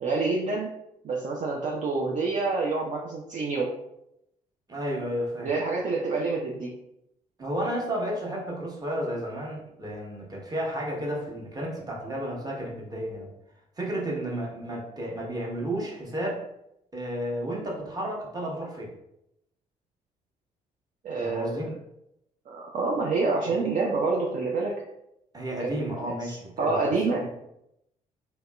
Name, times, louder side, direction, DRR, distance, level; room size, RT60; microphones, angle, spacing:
voice 1, 0.0-0.7 1.0-3.7 5.4-6.7 21.0-21.8 22.5-24.7 25.6-25.9 26.2-27.3, right 3 dB, 40° right, -2 dB, 0.5 m, -27 dB
voice 2, 4.7-5.5 7.4-13.3 13.8-16.4 16.9-18.9 21.2-21.7 23.4-23.7 25.3-27.3, equal, 20° right, -2 dB, 1.0 m, -32 dB
2.8 x 2.8 x 2.2 m, 0.82 s
figure-of-eight pair, 45°, 19 cm